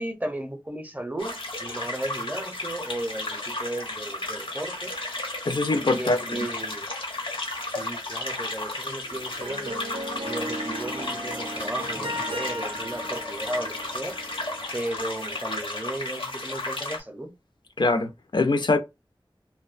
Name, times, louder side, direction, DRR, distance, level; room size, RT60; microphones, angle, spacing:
voice 1, 0.0-4.9 5.9-6.9 7.7-9.8 10.2-14.2 14.7-17.3, right 1 dB, 20° right, 0.5 m, -35 dB
sound 1, 1.2-17.0, left 2 dB, 80° left, 0.8 m, -33 dB
voice 2, 5.5-6.4 17.8-18.8, left 3 dB, 60° left, 0.4 m, -23 dB
Harp, 9.0-14.8, equal, 80° right, 0.5 m, -36 dB
2.5 x 2.1 x 2.4 m
wide cardioid pair, 50°, 9 cm